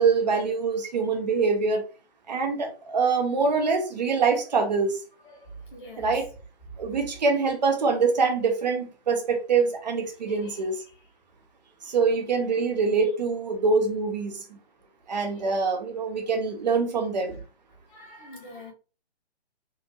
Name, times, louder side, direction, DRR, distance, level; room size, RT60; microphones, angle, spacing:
voice 1, 0.0-1.9 2.3-5.0 6.0-6.2 6.8-10.8 11.9-14.6 15.1-17.3, right 4 dB, 40° right, 0.7 m, -24 dB
voice 2, 5.2-6.2 6.9-7.3 10.1-11.1 15.1-15.5 17.3-17.4 17.9-18.7, right 1 dB, 50° left, 1.7 m, -45 dB
3.8 x 2.5 x 2.9 m
figure-of-eight pair, 135°, 33 cm